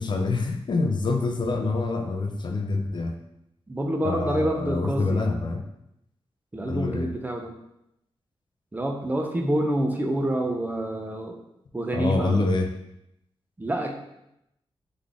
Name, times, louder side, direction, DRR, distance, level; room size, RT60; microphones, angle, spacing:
voice 1, 0.0-3.1 4.0-5.6 6.7-7.1 11.9-12.7, left 3 dB, 50° left, 4 dB, 0.5 m, -26 dB
voice 2, 3.7-5.2 6.5-7.5 8.7-11.4 11.7-12.4 13.6-14.0, right 1 dB, 15° right, 2 dB, 0.5 m, -27 dB
3.8 x 3.6 x 3.4 m, 0.83 s
wide cardioid pair, 135°, 10 cm